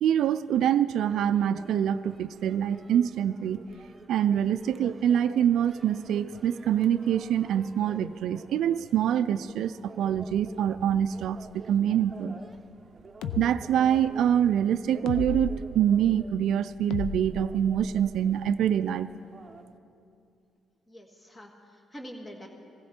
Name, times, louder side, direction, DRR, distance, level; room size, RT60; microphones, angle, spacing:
voice 1, 0.0-3.6 4.1-12.4 13.4-19.1, right 9 dB, 75° right, 11 dB, 0.3 m, -25 dB
sound 1, 1.1-19.6, right 3 dB, 20° right, 0.9 m, -49 dB
sound 2, 13.2-13.5 15.1-15.6 16.9-18.1, left 7 dB, 85° left, 0.6 m, -34 dB
voice 2, 20.9-22.5, equal, 20° left, 2 dB, 1.8 m, -45 dB
17.5 x 15.5 x 4.4 m, 2.6 s
cardioid pair, 90°, 0 cm